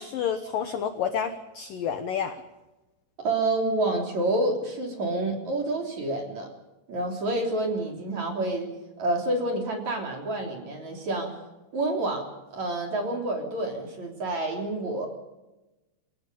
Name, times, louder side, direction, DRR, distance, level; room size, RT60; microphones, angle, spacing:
voice 1, 0.0-2.3, left 8 dB, 80° left, 7 dB, 2.0 m, -29 dB
voice 2, 3.2-6.5 6.9-8.7 9.0-11.3 11.7-12.2 12.5-15.1, right 2 dB, 40° right, 2 dB, 4.2 m, -28 dB
30.0 x 17.0 x 5.5 m, 1.0 s
omnidirectional pair, 5.7 m